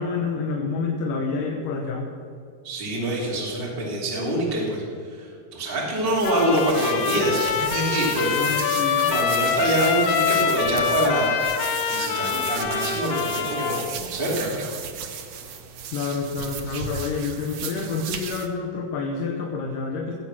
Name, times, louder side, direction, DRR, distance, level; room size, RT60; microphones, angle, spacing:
voice 1, 0.0-2.1 8.4-9.2 15.9-20.1, left 4 dB, 75° left, 1 dB, 2.6 m, -28 dB
voice 2, 2.6-8.7 9.1-11.3 11.9-14.6, right 1 dB, 15° right, -3 dB, 2.5 m, -25 dB
sound 1, 6.1-18.5, right 7 dB, 65° right, 1.7 m, -35 dB
Trumpet, 6.2-13.8, left 7 dB, 90° left, 2.8 m, -25 dB
17.5 x 7.9 x 6.1 m, 2.4 s
omnidirectional pair, 4.0 m